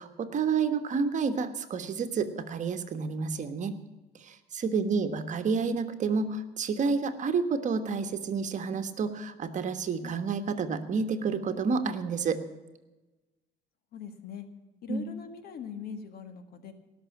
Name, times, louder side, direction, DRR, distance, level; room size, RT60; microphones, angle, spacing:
voice 1, 0.0-3.8 4.2-12.4 14.9-15.0, right 5 dB, 45° right, 9 dB, 1.3 m, -29 dB
voice 2, 4.6-5.2 10.0-10.2 13.9-14.5 14.8-16.7, left 7 dB, 65° left, 8 dB, 1.8 m, -42 dB
18.5 x 6.4 x 8.6 m, 1.1 s
cardioid pair, 110°, 17 cm